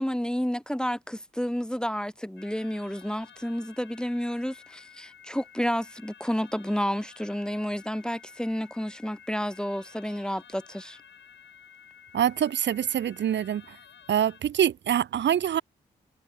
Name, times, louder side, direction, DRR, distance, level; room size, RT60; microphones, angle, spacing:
voice 1, 0.0-11.0, equal, 5° left, 1.0 m, -30 dB
sound 1, 2.4-14.4, left 8 dB, 70° left, 7.5 m, -52 dB
voice 2, 12.1-13.8 14.1-15.6, right 10 dB, 70° right, 0.9 m, -25 dB
supercardioid pair, 45°, 19 cm